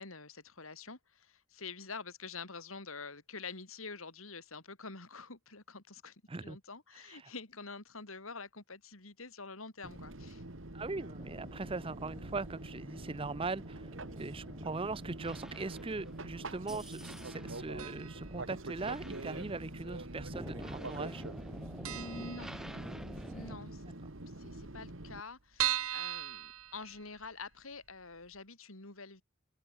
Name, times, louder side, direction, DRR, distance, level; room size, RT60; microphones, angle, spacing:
voice 1, 0.0-6.2 6.4-10.4 21.9-22.5 23.3-23.8 24.4-29.2, left 4 dB, 75° left, 3.5 m, -47 dB
Fixed-wing aircraft airplane, 9.8-25.2, right 2 dB, 65° right, 2.3 m, -45 dB
voice 2, 10.7-21.2 24.0-24.1, right 3 dB, 25° right, 0.6 m, -40 dB
sound 1, 11.2-23.6, equal, ahead, 2.7 m, -49 dB
sound 2, 17.8-18.3 18.6-18.7 19.6-20.3 20.6-20.8 21.0-21.1 21.5-21.6 21.8-23.2 23.5-23.6 23.9-24.0 24.2-24.3 24.8-27.4 27.9-28.0 28.3-28.4, right 12 dB, 90° right, 1.3 m, -38 dB
open air
head